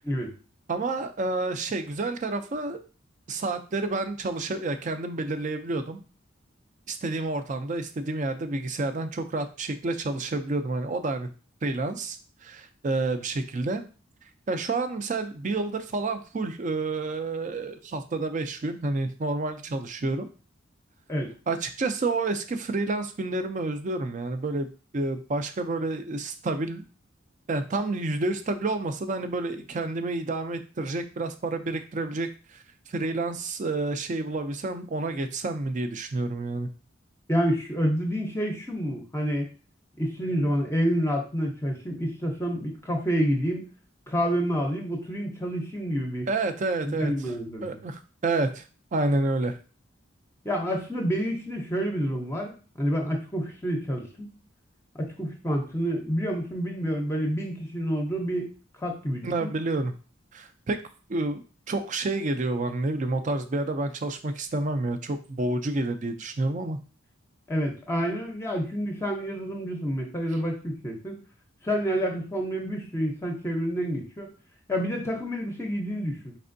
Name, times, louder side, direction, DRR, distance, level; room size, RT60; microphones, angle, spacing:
voice 1, 0.7-2.8 3.3-6.0 6.9-11.3 11.6-13.8 14.5-20.3 21.5-26.8 27.5-36.7 46.3-47.3 47.6-48.7 48.9-49.6 59.2-59.9 60.3-60.8 61.1-66.8, right 2 dB, 40° right, 9 dB, 0.4 m, -29 dB
voice 2, 37.3-39.4 40.0-43.7 44.1-46.3 46.9-47.8 50.4-54.3 55.0-58.5 58.8-59.5 67.5-71.2 71.6-74.3 74.7-76.3, equal, 15° left, 1 dB, 0.6 m, -28 dB
4.3 x 3.3 x 2.6 m, 0.36 s
head